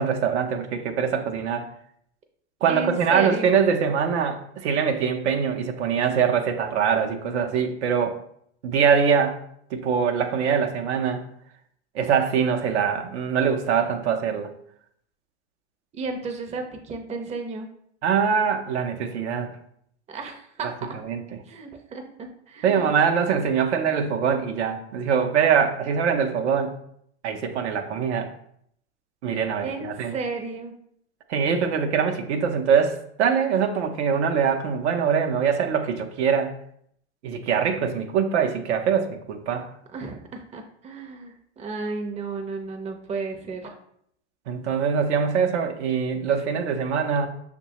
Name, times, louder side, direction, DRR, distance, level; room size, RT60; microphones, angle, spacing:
voice 1, 0.0-1.7 2.6-8.2 8.6-9.4 9.7-11.3 11.9-14.5 18.0-19.5 21.0-21.2 22.6-26.7 27.2-28.3 29.2-30.1 31.3-36.5 37.2-39.7 44.5-47.3, right 7 dB, 75° right, 4 dB, 0.6 m, -23 dB
voice 2, 2.7-3.5 15.9-17.7 20.1-20.7 21.5-23.0 29.6-30.7 39.9-43.7, right 3 dB, 20° right, 3 dB, 0.6 m, -33 dB
6.1 x 2.2 x 2.8 m, 0.69 s
hypercardioid pair, 85°, 34 cm